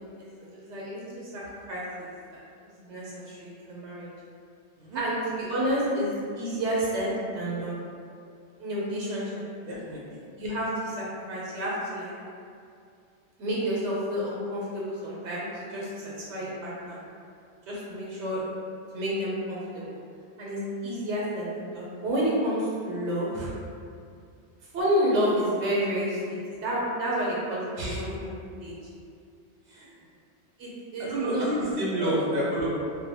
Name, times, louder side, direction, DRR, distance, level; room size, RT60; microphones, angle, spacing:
voice 1, 0.0-2.1 2.6-4.1 4.9-7.8 8.6-9.4 10.4-12.1 13.4-17.0 17.7-18.4 18.9-19.8 20.4-23.5 24.7-28.7 30.6-32.2, equal, 90° right, -6 dB, 0.9 m, -30 dB
voice 2, 9.7-10.3 27.8-28.0 29.7-29.9 31.0-32.7, right 1 dB, 65° right, -7 dB, 0.7 m, -29 dB
2.6 x 2.1 x 2.7 m, 2.4 s
omnidirectional pair, 1.2 m